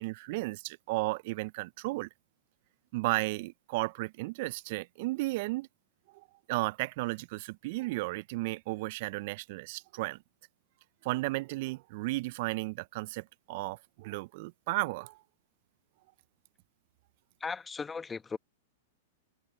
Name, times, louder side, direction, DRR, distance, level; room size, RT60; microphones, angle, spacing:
voice 1, 0.0-2.1 2.9-5.7 6.1-10.2 11.0-15.2, right 22 dB, 55° right, 0.9 m, -34 dB
voice 2, 17.4-18.4, left 5 dB, 15° left, 1.6 m, -37 dB
hypercardioid pair, 105°, 0 cm